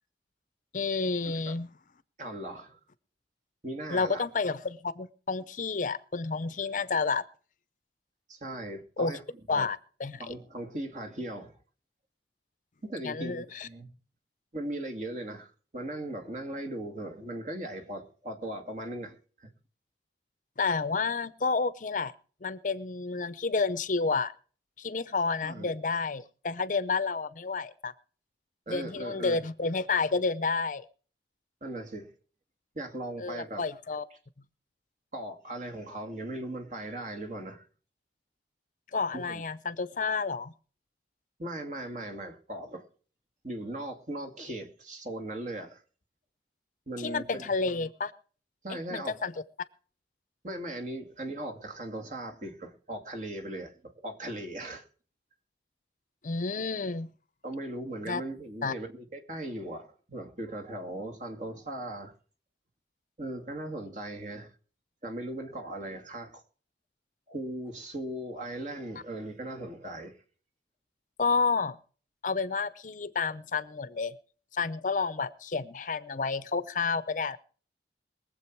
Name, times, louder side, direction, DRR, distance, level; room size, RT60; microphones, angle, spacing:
voice 1, 0.7-1.7 3.9-7.2 9.0-9.1 9.5-10.3 13.0-13.7 20.6-22.1 22.4-24.3 24.8-27.9 28.7-30.8 33.2-34.0 38.9-40.5 47.0-48.1 48.7-49.3 56.2-57.1 58.1-58.2 58.6-58.7 71.2-71.8 72.2-74.1 74.5-77.4, left 4 dB, 45° left, 0.6 m, -30 dB
voice 2, 2.2-2.8 3.6-4.2 8.3-9.2 9.5-9.7 10.2-11.5 12.8-13.9 14.5-19.1 19.4-19.5 25.4-25.8 28.7-29.4 31.6-32.1 32.7-33.6 35.1-37.6 39.1-39.4 41.4-42.9 43.4-45.8 46.9-47.4 48.6-49.2 50.4-54.8 57.4-62.1 63.2-64.5 65.0-66.4 67.3-70.2, right 1 dB, 45° right, 2.3 m, -38 dB
22.5 x 7.7 x 4.6 m
head